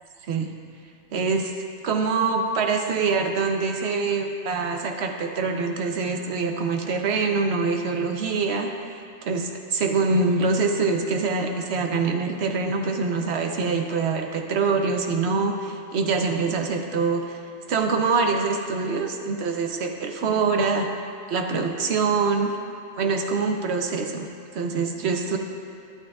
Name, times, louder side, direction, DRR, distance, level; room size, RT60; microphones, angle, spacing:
voice 1, 1.1-1.5 1.8-17.4 17.7-20.9 21.3-22.5 23.0-24.3 24.5-25.4, right 4 dB, 60° right, 3 dB, 1.0 m, -24 dB
12.0 x 11.0 x 2.4 m, 2.7 s
omnidirectional pair, 1.4 m